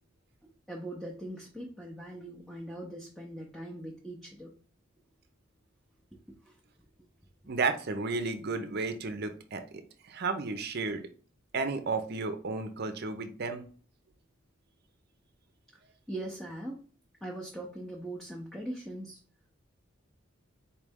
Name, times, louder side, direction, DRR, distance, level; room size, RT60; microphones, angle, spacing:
voice 1, 0.7-4.5 6.5-6.6 16.1-16.8 17.2-19.2, right 1 dB, ahead, -3 dB, 0.6 m, -41 dB
voice 2, 7.5-9.8 10.1-11.0 11.5-13.6, right 3 dB, 50° right, 8 dB, 0.6 m, -33 dB
4.4 x 3.2 x 3.5 m, 0.40 s
head